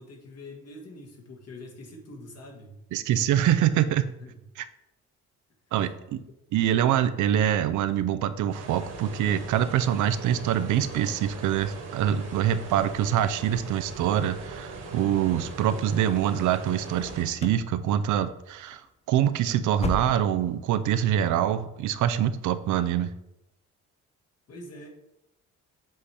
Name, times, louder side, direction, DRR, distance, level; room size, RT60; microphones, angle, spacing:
voice 1, 0.0-2.7 4.2-4.4 6.1-6.3 24.5-24.9, left 1 dB, 55° left, 1 dB, 1.5 m, -44 dB
voice 2, 2.9-4.0 5.7-6.2 6.5-18.8 19.1-23.1, right 10 dB, 75° right, 12 dB, 0.5 m, -25 dB
sound 1, 8.5-17.3, right 3 dB, 55° right, 1.6 m, -40 dB
sound 2, 17.0-17.7 18.0-18.4 18.7-18.9 19.3-20.6 20.9-21.0 21.5-21.6, left 2 dB, 20° left, 0.5 m, -35 dB
7.5 x 3.3 x 4.2 m, 0.87 s
cardioid pair, 90°, 30 cm